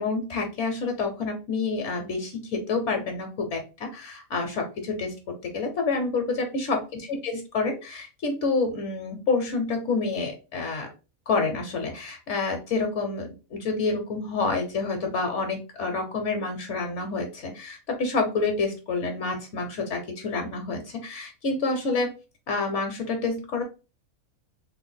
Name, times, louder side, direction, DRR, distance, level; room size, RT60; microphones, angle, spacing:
voice 1, 0.0-6.8 7.1-10.9 11.3-22.1 22.5-23.6, left 3 dB, 65° left, 4 dB, 1.0 m, -28 dB
3.2 x 2.1 x 3.8 m, 0.31 s
omnidirectional pair, 1.4 m